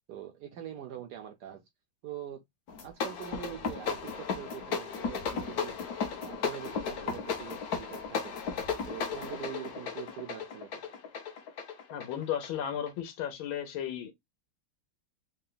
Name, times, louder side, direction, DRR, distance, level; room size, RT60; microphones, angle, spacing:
voice 1, 0.1-1.6 2.0-2.4 2.8-5.8 6.2-8.4 8.9-10.8, right 11 dB, 80° right, 0.9 m, -43 dB
sound 1, 2.7-13.0, left 6 dB, 60° left, 1.1 m, -35 dB
voice 2, 11.9-14.1, left 9 dB, 75° left, 1.6 m, -34 dB
3.8 x 2.2 x 3.7 m
omnidirectional pair, 2.3 m